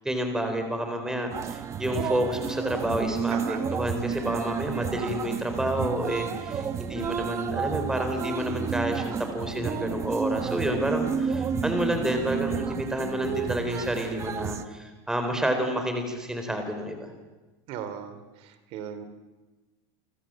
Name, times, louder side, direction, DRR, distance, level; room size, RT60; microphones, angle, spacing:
voice 1, 0.0-17.1, right 1 dB, 5° right, 5 dB, 3.9 m, -29 dB
sound 1, 1.3-14.6, right 7 dB, 20° right, 1.1 m, -31 dB
voice 2, 3.3-3.6 17.7-19.0, right 8 dB, 45° right, 11 dB, 3.1 m, -37 dB
29.5 x 25.0 x 7.6 m, 1.2 s
cardioid pair, 175°, 14 cm